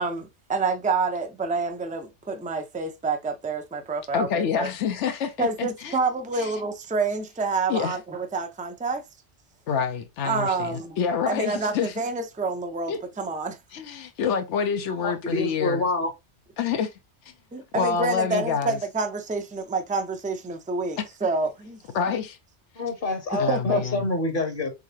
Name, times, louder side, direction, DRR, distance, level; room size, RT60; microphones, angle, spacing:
voice 1, 0.0-4.7 5.4-9.0 10.2-11.0 11.3-13.6 17.5-21.8 23.3-23.8, right 3 dB, 15° right, 0.3 m, -28 dB
voice 2, 4.1-6.0 6.3-6.6 7.7-8.0 9.7-12.0 12.9-13.0 13.7-15.9 16.6-16.9 17.7-18.8 21.0-21.1 21.9-22.4 23.4-24.1, left 6 dB, 90° left, 1.0 m, -27 dB
voice 3, 15.0-16.1 22.8-24.7, left 3 dB, 50° left, 1.0 m, -27 dB
3.6 x 3.6 x 2.7 m
omnidirectional pair, 1.2 m